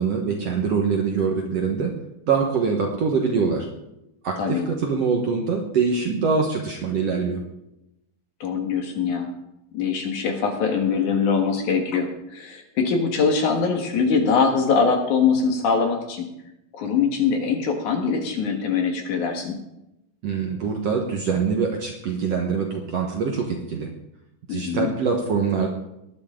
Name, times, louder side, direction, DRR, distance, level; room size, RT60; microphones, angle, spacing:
voice 1, 0.0-1.9 2.2-3.7 4.2-7.4 20.2-23.9 24.5-25.7, right 5 dB, 60° right, 2 dB, 1.8 m, -24 dB
voice 2, 8.4-9.3 9.7-16.3 16.7-19.6 24.5-24.9, left 5 dB, 60° left, 4 dB, 2.8 m, -22 dB
19.5 x 11.0 x 3.8 m, 0.86 s
omnidirectional pair, 4.2 m